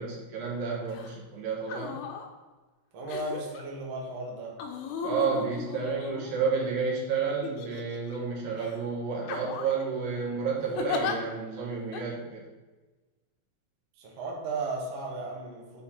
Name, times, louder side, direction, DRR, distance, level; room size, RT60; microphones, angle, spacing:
voice 1, 0.0-2.0 5.0-12.4, right 5 dB, 75° right, -3 dB, 3.1 m, -31 dB
sound 1, 0.9-1.1 1.6-2.3 3.1-3.6 4.6-6.7 7.4-8.2 8.6-8.8 9.2-9.8 10.8-11.2 11.9-12.0, left 6 dB, 90° left, 2.6 m, -36 dB
voice 2, 2.9-4.6 14.0-15.8, right 3 dB, 60° right, -2 dB, 2.0 m, -35 dB
9.2 x 4.1 x 4.3 m, 1.2 s
omnidirectional pair, 4.2 m